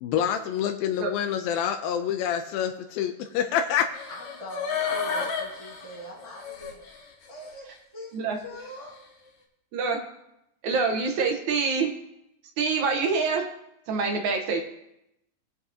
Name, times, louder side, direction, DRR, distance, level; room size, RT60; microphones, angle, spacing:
voice 1, 0.0-3.9, left 9 dB, 90° left, 5 dB, 2.4 m, -27 dB
sound 1, 3.9-7.0 7.4-7.5, left 5 dB, 60° left, 1.5 m, -31 dB
voice 2, 4.1-6.8 7.3-9.0, left 1 dB, 15° right, -6 dB, 1.0 m, -42 dB
voice 3, 9.7-10.0 10.6-11.9 12.6-13.5 13.9-14.6, right 4 dB, 65° right, 3 dB, 2.1 m, -25 dB
20.5 x 6.9 x 2.7 m, 0.83 s
omnidirectional pair, 4.1 m